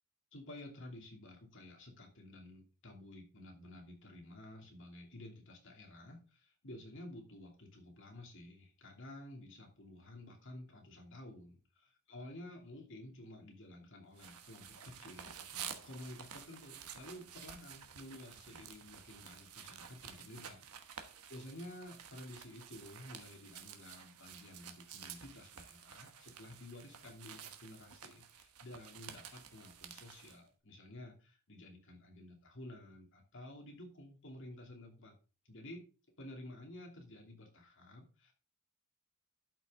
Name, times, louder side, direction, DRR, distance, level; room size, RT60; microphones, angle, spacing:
voice 1, 0.3-35.1 35.4-35.8 36.2-38.3, left 1 dB, 60° left, 1 dB, 2.8 m, -52 dB
sound 1, 14.2-30.4, right 8 dB, 85° right, 1.2 m, -51 dB
12.0 x 5.6 x 3.7 m, 0.35 s
head